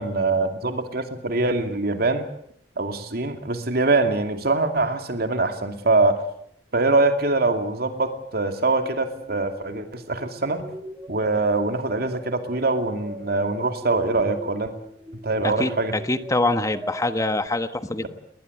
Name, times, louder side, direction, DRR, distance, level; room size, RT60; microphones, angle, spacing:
voice 1, 0.0-2.3 2.8-6.2 6.7-10.6 11.1-14.7 15.2-15.9, right 3 dB, 60° right, 6 dB, 2.5 m, -23 dB
sound 1, 8.6-17.5, equal, 15° right, 2.7 m, -41 dB
voice 2, 15.4-18.1, left 2 dB, 20° left, 10 dB, 1.3 m, -24 dB
20.5 x 20.5 x 7.9 m, 0.69 s
head